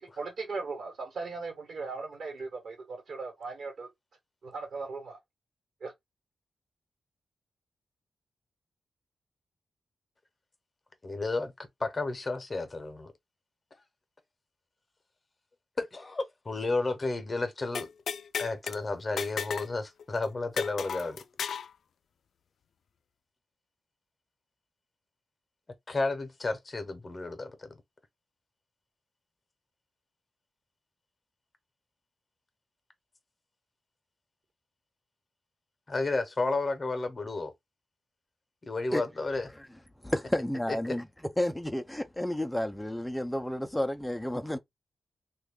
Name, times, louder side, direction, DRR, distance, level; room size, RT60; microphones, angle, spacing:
voice 1, 0.2-3.9 4.4-5.2 5.8-5.9, right 4 dB, 65° right, 1.1 m, -38 dB
voice 2, 11.0-11.5 11.8-13.1 15.8-17.9 18.4-21.2 25.9-27.5 35.9-37.5 38.7-39.5, left 3 dB, 30° left, 0.7 m, -32 dB
sound 1, 17.7-18.8 19.2-19.7 20.0-20.1 20.6-21.7, left 7 dB, 85° left, 0.3 m, -34 dB
voice 3, 40.0-41.1 41.4-44.6, left 1 dB, 5° left, 0.4 m, -31 dB
3.1 x 2.3 x 3.5 m
wide cardioid pair, 125°, 0 cm